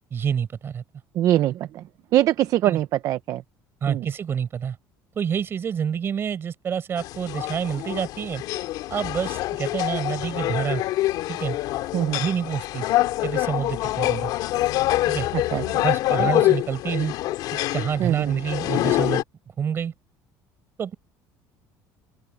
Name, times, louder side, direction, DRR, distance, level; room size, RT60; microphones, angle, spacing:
voice 1, 0.1-0.8 2.6-2.8 3.8-4.8 5.2-8.4 8.9-10.8 11.3-11.6 12.1-12.9 13.2-14.3 15.1-15.3 15.8-17.1 17.7-19.2 19.6-19.9 20.8-20.9, right 7 dB, 30° right, 5.1 m, -27 dB
voice 2, 1.1-1.8 2.1-3.4 3.9-4.1 11.9-12.2 15.3-15.8 16.2-16.3 18.0-18.4, right 13 dB, 50° right, 0.7 m, -23 dB
sound 1, 7.0-19.2, left 16 dB, 65° left, 3.0 m, -25 dB
open air
cardioid pair, 150°, 8 cm